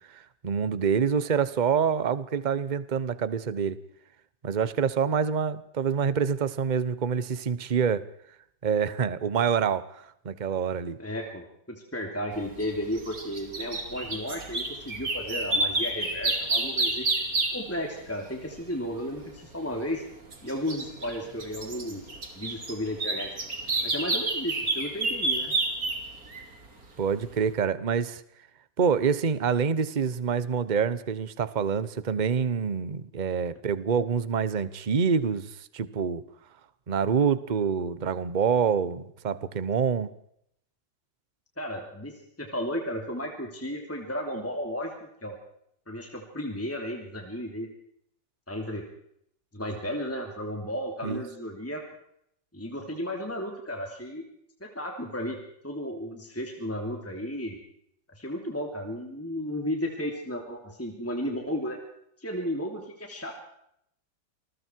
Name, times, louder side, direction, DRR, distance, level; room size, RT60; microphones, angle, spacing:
voice 1, 0.1-3.8 4.4-8.1 8.6-11.0 27.0-28.2 28.8-36.2 36.9-40.1 51.0-51.2, right 6 dB, 30° right, 15 dB, 0.9 m, -26 dB
voice 2, 11.0-17.3 17.5-20.0 20.4-22.1 22.3-23.3 23.8-25.5 41.6-45.3 45.9-47.7 48.5-48.8 49.5-51.8 52.5-54.2 54.6-55.4 55.6-57.6 58.1-61.8 62.2-63.4, equal, 5° left, 2 dB, 3.1 m, -34 dB
sound 1, 12.6-17.8 20.1-26.7 27.2-27.3, right 2 dB, 50° right, 3.5 m, -30 dB
28.5 x 20.5 x 4.7 m, 0.73 s
omnidirectional pair, 2.0 m